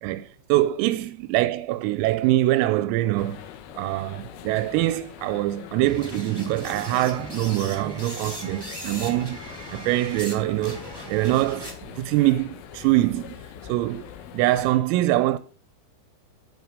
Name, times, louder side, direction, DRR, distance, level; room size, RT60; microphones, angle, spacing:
voice 1, 0.0-3.5 3.8-9.4 9.7-10.8 11.1-13.4 13.7-14.1 14.3-15.4, right 16 dB, 85° right, 3.4 m, -24 dB
sound 1, 3.2-14.7, left 9 dB, 75° left, 3.8 m, -43 dB
sound 2, 5.8-10.4 10.6-12.0, right 1 dB, 5° right, 2.6 m, -38 dB
11.5 x 8.8 x 6.6 m
omnidirectional pair, 6.0 m